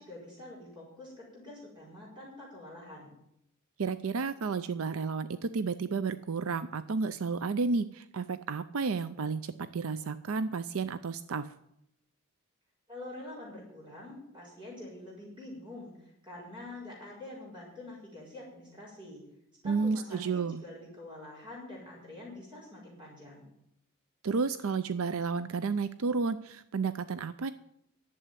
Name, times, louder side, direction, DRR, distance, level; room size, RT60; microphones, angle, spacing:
voice 1, 0.0-3.2 12.9-19.2 19.6-23.5, left 1 dB, 20° right, -4 dB, 5.0 m, -46 dB
voice 2, 3.8-11.5 19.6-20.6 24.2-27.5, right 4 dB, 70° right, 13 dB, 0.5 m, -32 dB
11.0 x 7.8 x 9.2 m, 0.79 s
head